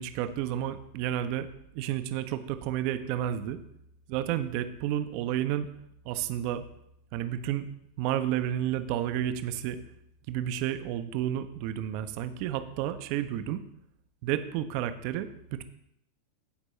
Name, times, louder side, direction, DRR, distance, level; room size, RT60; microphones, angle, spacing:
voice 1, 0.0-1.5 1.7-3.6 4.1-5.7 6.0-6.6 7.1-7.7 8.0-9.8 10.3-13.6 14.2-15.6, right 11 dB, 45° right, 11 dB, 0.6 m, -31 dB
15.5 x 5.2 x 3.2 m, 0.78 s
figure-of-eight pair, 90°, 0 cm